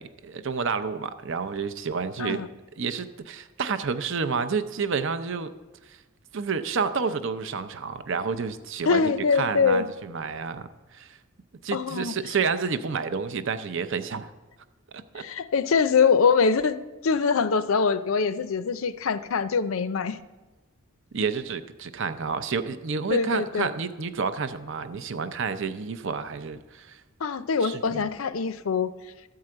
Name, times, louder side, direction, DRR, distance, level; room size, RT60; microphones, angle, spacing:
voice 1, 0.0-2.4 2.8-5.5 5.9-6.0 6.3-11.2 11.6-14.3 14.9-15.2 21.1-27.0 27.6-28.0, right 5 dB, 60° right, 11 dB, 0.6 m, -30 dB
voice 2, 8.8-9.9 11.7-12.1 15.2-16.8 17.0-20.2 23.1-23.7 27.2-28.9, left 5 dB, 70° left, 13 dB, 0.5 m, -23 dB
13.5 x 4.7 x 7.6 m, 1.2 s
head